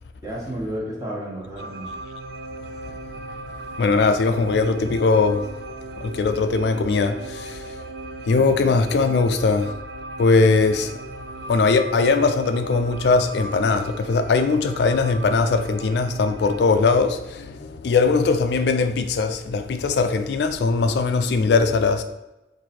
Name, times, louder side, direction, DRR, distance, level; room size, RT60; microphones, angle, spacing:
voice 1, 0.2-1.9 8.3-8.7, equal, 20° right, 1.2 m, -32 dB
sound 1, 1.6-16.7, right 2 dB, 65° right, 0.4 m, -37 dB
voice 2, 3.8-5.4 6.0-7.6 8.3-9.7 10.2-10.9 11.5-22.0, left 4 dB, 70° left, 0.3 m, -20 dB
4.6 x 2.6 x 4.2 m
head